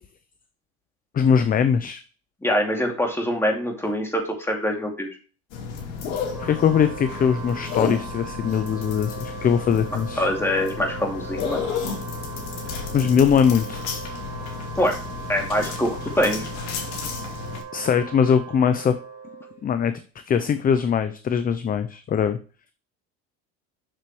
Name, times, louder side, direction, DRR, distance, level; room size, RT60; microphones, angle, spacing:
voice 1, 1.1-2.0 6.4-10.3 12.9-13.8 17.7-18.9 19.6-19.9 20.3-22.4, left 7 dB, 25° left, 11 dB, 0.6 m, -21 dB
voice 2, 2.4-5.1 10.2-11.6 14.8-15.0 15.3-16.5, equal, 5° left, 1 dB, 2.6 m, -24 dB
sound 1, 5.5-17.6, left 5 dB, 85° left, 2.7 m, -32 dB
Wind instrument woodwind instrument, 6.2-19.6, right 6 dB, 10° right, 2.8 m, -39 dB
7.5 x 6.6 x 3.1 m, 0.37 s
supercardioid pair, 115°, 33 cm